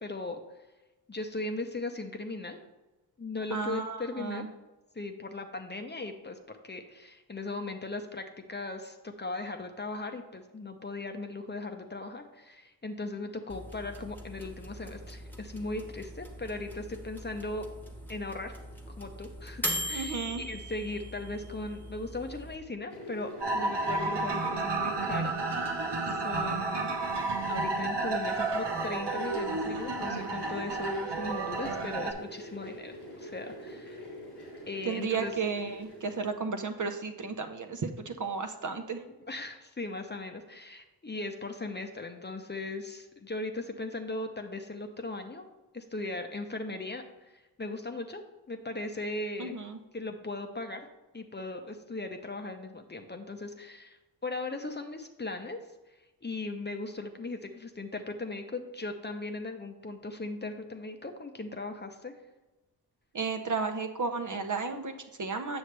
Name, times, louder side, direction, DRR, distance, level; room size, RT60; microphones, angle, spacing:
voice 1, 0.0-0.4 1.1-2.6 3.2-4.5 4.9-6.4 6.6-17.6 18.1-18.5 19.0-25.7 26.1-26.9 27.5-34.0 34.7-35.3 39.3-45.5 45.7-47.0 47.3-49.6 49.9-50.8 51.1-55.6 56.2-62.1, left 2 dB, 25° left, 6 dB, 0.7 m, -38 dB
voice 2, 3.5-4.5 19.9-20.4 34.8-39.0 49.4-49.8 63.1-65.6, right 4 dB, 50° right, 6 dB, 0.7 m, -33 dB
sound 1, 13.5-22.6, equal, 5° left, 1.1 m, -40 dB
sound 2, 22.9-36.4, equal, 90° left, 2.8 m, -45 dB
sound 3, 23.4-32.1, right 3 dB, 90° right, 1.1 m, -31 dB
7.9 x 6.3 x 3.3 m, 1.1 s
cardioid pair, 65°, 40 cm